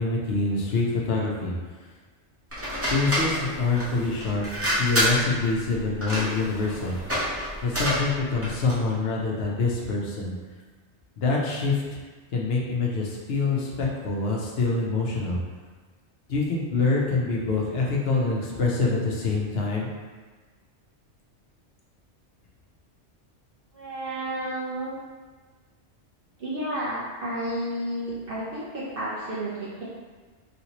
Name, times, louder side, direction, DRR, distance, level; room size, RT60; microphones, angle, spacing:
voice 1, 0.0-1.5 2.9-4.4 4.8-7.0 7.6-10.3 11.2-12.0 12.3-15.4 16.3-19.9, left 3 dB, 65° left, -2 dB, 0.8 m, -25 dB
sound 1, 2.5-8.9, equal, 15° right, 0.8 m, -28 dB
voice 2, 23.7-25.0 26.4-29.8, right 1 dB, 60° right, -8 dB, 0.9 m, -31 dB
3.2 x 2.8 x 2.8 m, 1.4 s
omnidirectional pair, 1.2 m